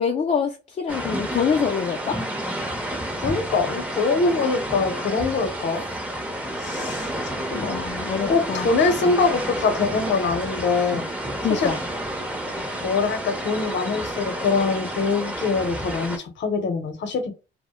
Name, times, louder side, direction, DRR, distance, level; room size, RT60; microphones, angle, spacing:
voice 1, 0.0-2.3 7.5-8.7 11.4-11.8, left 6 dB, 35° left, 0.4 m, -25 dB
sound 1, 0.9-16.2, right 1 dB, 5° right, 0.7 m, -30 dB
voice 2, 3.2-5.8 6.5-7.9 8.3-11.0 11.5-11.7 12.8-17.3, left 4 dB, 65° left, 0.8 m, -24 dB
2.1 x 2.0 x 2.9 m
cardioid pair, 90°, 20 cm